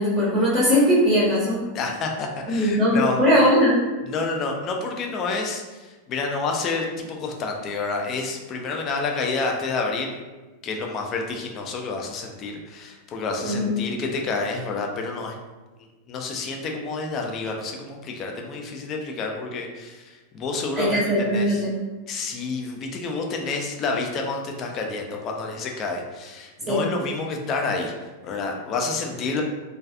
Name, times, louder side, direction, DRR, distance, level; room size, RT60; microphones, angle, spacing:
voice 1, 0.0-1.6 2.5-3.8 13.4-13.7 20.8-21.7 26.7-26.8, equal, 20° right, -8 dB, 0.7 m, -20 dB
voice 2, 1.7-3.2 4.0-10.1 10.6-15.4 16.1-21.0 21.3-21.7 22.1-27.9 28.2-29.4, left 3 dB, 30° left, 2 dB, 0.4 m, -29 dB
2.3 x 2.3 x 2.5 m, 1.2 s
figure-of-eight pair, 90°, 0 cm